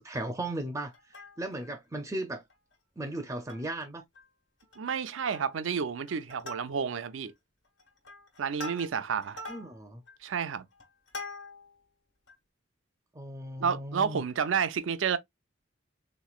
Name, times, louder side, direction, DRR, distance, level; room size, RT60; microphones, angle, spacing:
voice 1, 0.0-2.4 3.0-4.0 9.5-10.0 13.2-14.2, right 1 dB, 15° right, 0.4 m, -36 dB
Plucked string instrument, 0.9-1.7 2.2-2.3 2.5-2.7 3.2-3.8 4.2-4.3 4.6-5.0 5.3-5.7 6.1-7.1 7.7-11.8 12.3-12.4, left 1 dB, 65° left, 1.3 m, -44 dB
voice 2, 4.8-7.3 8.4-9.4 10.2-10.6 13.6-15.2, right 6 dB, 90° right, 0.5 m, -30 dB
3.6 x 3.0 x 2.3 m
head